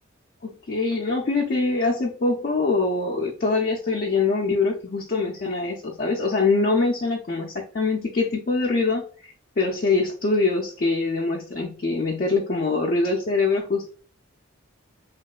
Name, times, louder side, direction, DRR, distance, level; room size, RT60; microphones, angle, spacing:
voice 1, 0.4-13.9, left 3 dB, 45° left, -1 dB, 0.4 m, -24 dB
3.1 x 2.8 x 2.3 m, 0.40 s
head